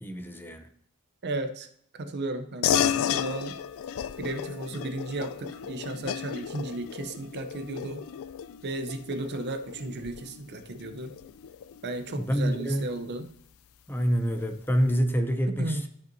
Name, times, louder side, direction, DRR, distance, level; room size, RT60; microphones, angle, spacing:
voice 1, 0.0-0.6 12.2-12.9 13.9-15.9, equal, 10° left, 7 dB, 0.6 m, -27 dB
voice 2, 1.2-1.7 1.9-3.6 4.2-8.1 8.6-11.1 11.8-13.3 15.5-15.9, right 2 dB, 50° right, 9 dB, 0.6 m, -34 dB
sound 1, 2.6-12.5, left 9 dB, 65° left, 0.3 m, -33 dB
13.0 x 5.6 x 2.6 m, 0.68 s
head